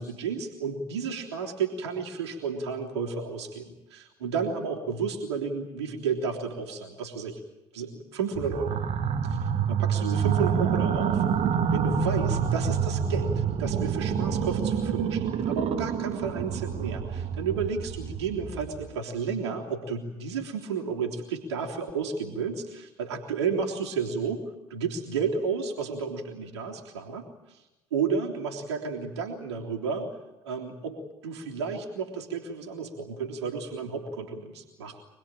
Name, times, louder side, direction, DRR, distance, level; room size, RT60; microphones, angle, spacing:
voice 1, 0.0-7.4 7.7-8.8 9.2-9.4 9.7-27.6 27.9-30.1 30.4-35.0, right 5 dB, 75° right, 1 dB, 3.4 m, -32 dB
sound 1, 8.4-18.9, right 7 dB, 45° right, 2.3 m, -27 dB
25.5 x 20.5 x 9.0 m, 0.97 s
figure-of-eight pair, 55°, 14 cm